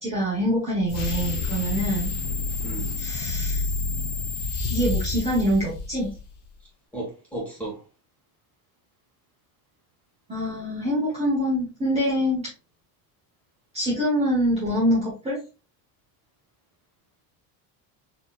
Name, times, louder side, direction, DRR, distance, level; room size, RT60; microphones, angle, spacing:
voice 1, 0.0-2.1 3.0-3.6 4.7-6.1 10.3-12.5 13.7-15.4, equal, 15° right, 1.2 m, -25 dB
sound 1, 0.9-6.3, left 3 dB, 40° left, 0.9 m, -28 dB
voice 2, 2.6-3.0 3.5-3.7 6.9-7.8 11.1-11.2, right 2 dB, 5° left, 1.6 m, -35 dB
4.1 x 3.0 x 2.4 m
cardioid pair, 165°, 41 cm